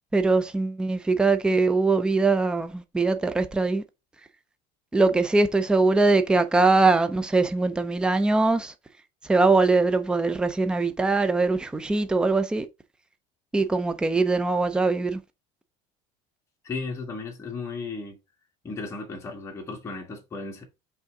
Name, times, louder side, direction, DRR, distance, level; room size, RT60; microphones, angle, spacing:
voice 1, 0.1-3.8 4.9-8.7 9.2-12.7 13.5-15.2, right 3 dB, 5° right, 0.4 m, -22 dB
voice 2, 16.6-18.2 18.6-20.6, left 4 dB, 15° left, 1.8 m, -35 dB
5.5 x 3.6 x 5.1 m
cardioid pair, 180°, 16 cm